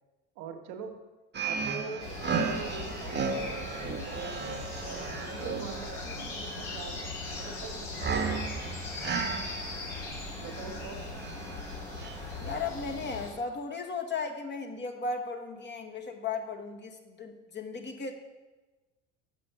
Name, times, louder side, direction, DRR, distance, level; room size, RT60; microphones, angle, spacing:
voice 1, 0.3-1.1 1.4-3.7 4.0-4.4 5.1-8.7 10.4-11.1, right 5 dB, 65° right, 4 dB, 1.1 m, -44 dB
sound 1, 1.3-12.5, right 5 dB, 30° right, 1.1 m, -35 dB
sound 2, 2.0-13.3, left 3 dB, 70° left, 2.4 m, -39 dB
voice 2, 12.4-18.1, left 4 dB, 30° left, 4 dB, 1.1 m, -36 dB
6.8 x 6.4 x 5.5 m, 1.2 s
hypercardioid pair, 70°, 37 cm